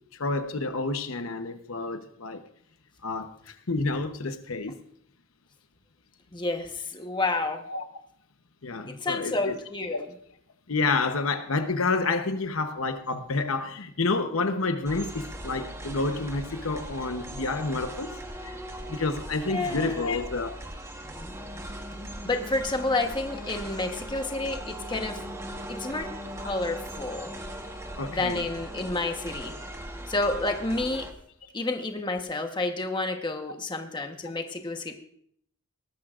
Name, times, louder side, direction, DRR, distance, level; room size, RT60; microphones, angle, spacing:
voice 1, 0.1-2.4 3.0-4.8 7.7-7.8 8.6-9.6 10.7-18.1 18.4-18.5 18.9-20.6 28.0-28.4, left 3 dB, 80° left, 8 dB, 1.0 m, -29 dB
voice 2, 6.3-7.6 8.8-10.1 19.5-20.1 22.2-25.2 25.7-26.1 26.4-27.3 28.1-29.5 30.1-31.1 31.5-34.9, left 2 dB, 20° left, 4 dB, 1.1 m, -30 dB
sound 1, 14.8-31.1, right 1 dB, 15° right, 1.1 m, -39 dB
19.0 x 13.5 x 2.5 m, 0.65 s
head